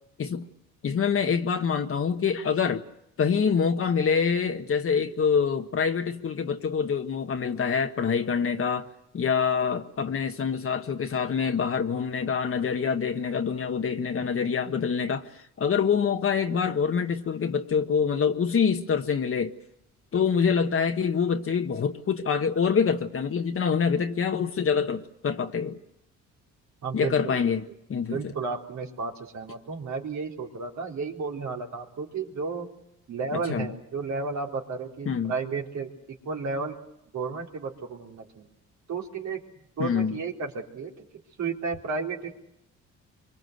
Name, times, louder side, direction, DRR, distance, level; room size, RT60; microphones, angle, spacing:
voice 1, 0.8-2.9 3.2-8.9 9.1-19.5 20.1-25.8 26.9-28.3 33.3-33.7 35.1-35.3 39.8-40.2, left 6 dB, 45° left, 1.4 m, -26 dB
voice 2, 26.8-27.4 28.1-32.7 33.1-35.9 36.3-36.8 37.1-38.5 38.9-39.4 39.8-41.0 41.4-42.4, right 4 dB, 65° right, 3.8 m, -33 dB
25.0 x 24.0 x 8.0 m
cardioid pair, 90°, 30 cm